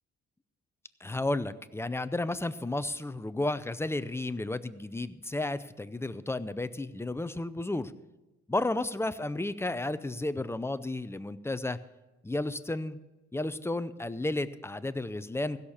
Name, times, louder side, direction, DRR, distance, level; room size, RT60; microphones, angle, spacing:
voice 1, 1.0-7.9 8.5-11.8 12.2-13.0 13.3-15.6, left 2 dB, 10° left, 13 dB, 0.5 m, -32 dB
16.0 x 6.6 x 7.1 m, 1.1 s
cardioid pair, 90°, 30 cm